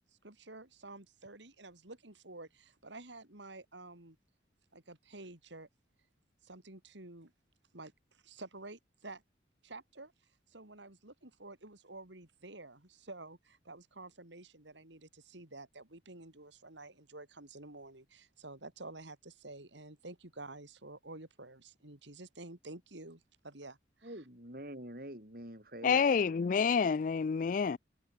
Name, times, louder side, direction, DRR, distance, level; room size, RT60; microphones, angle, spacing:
voice 1, 0.2-4.2 4.7-5.7 6.4-7.3 7.7-9.2 9.6-10.1 10.5-24.2, right 2 dB, 75° right, 3.7 m, -50 dB
voice 2, 24.0-26.4, right 1 dB, 50° right, 7.1 m, -46 dB
voice 3, 25.8-27.8, left 6 dB, 45° left, 0.3 m, -28 dB
head